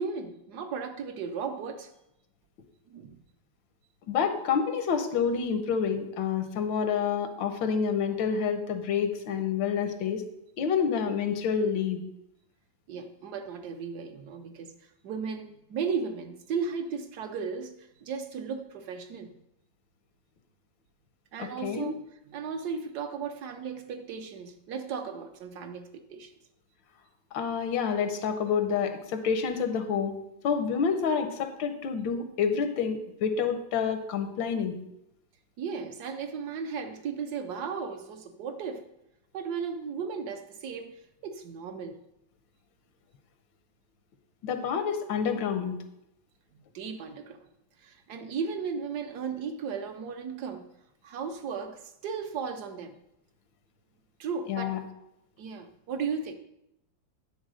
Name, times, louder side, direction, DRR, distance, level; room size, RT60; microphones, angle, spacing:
voice 1, 0.0-1.9 2.9-3.2 12.9-14.7 15.0-19.3 21.3-22.0 22.3-26.3 35.6-38.9 39.3-42.0 46.7-47.4 47.8-50.6 51.0-52.9 54.2-54.8 55.4-56.3, right 6 dB, 70° right, 1.1 m, -35 dB
voice 2, 4.1-10.2 10.6-12.0 21.4-21.9 27.3-30.2 30.4-34.8 44.4-45.8 54.5-54.8, left 6 dB, 90° left, 1.5 m, -28 dB
9.1 x 4.0 x 6.2 m
omnidirectional pair, 2.0 m